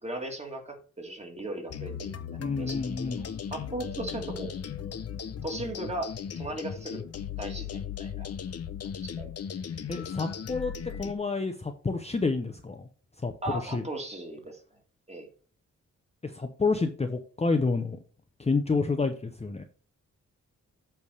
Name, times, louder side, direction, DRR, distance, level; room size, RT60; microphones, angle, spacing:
voice 1, 0.0-2.8 3.1-4.5 5.4-7.0 7.4-8.3 9.0-9.3 13.4-14.6 15.1-15.3, right 2 dB, 20° right, 2 dB, 2.0 m, -37 dB
sound 1, 1.7-11.1, left 8 dB, 55° left, 0.7 m, -37 dB
voice 2, 2.4-3.3 9.9-10.7 11.0-12.9 13.2-13.8 16.2-18.0 18.4-19.6, left 4 dB, 20° left, 5 dB, 0.7 m, -29 dB
8.3 x 3.5 x 6.5 m, 0.40 s
wide cardioid pair, 140°, 30 cm